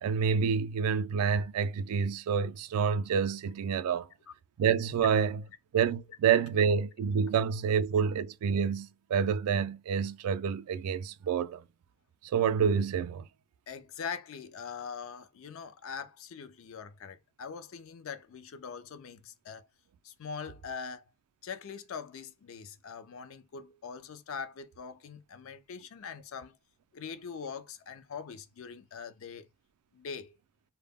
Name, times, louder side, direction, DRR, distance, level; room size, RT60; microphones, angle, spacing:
voice 1, 0.0-4.1 4.6-5.4 5.7-11.6 12.2-13.3, right 6 dB, 80° right, 0.3 m, -28 dB
voice 2, 13.7-19.7 20.0-21.0 21.4-26.6 26.9-29.5 29.9-30.4, left 6 dB, 60° left, 0.4 m, -42 dB
2.1 x 2.0 x 3.4 m
head